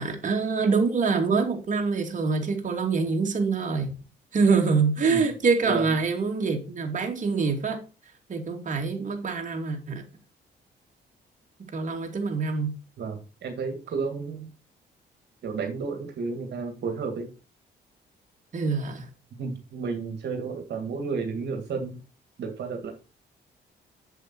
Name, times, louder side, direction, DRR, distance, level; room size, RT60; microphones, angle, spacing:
voice 1, 0.0-3.9 4.3-7.8 8.3-10.0 11.7-12.7 18.5-19.1, right 4 dB, 45° right, 2.7 m, -25 dB
voice 2, 5.6-5.9 13.0-14.5 15.4-17.3 19.4-22.0 22.4-22.9, right 4 dB, 70° right, 2.0 m, -32 dB
7.9 x 7.6 x 4.4 m
cardioid pair, 100°, 19 cm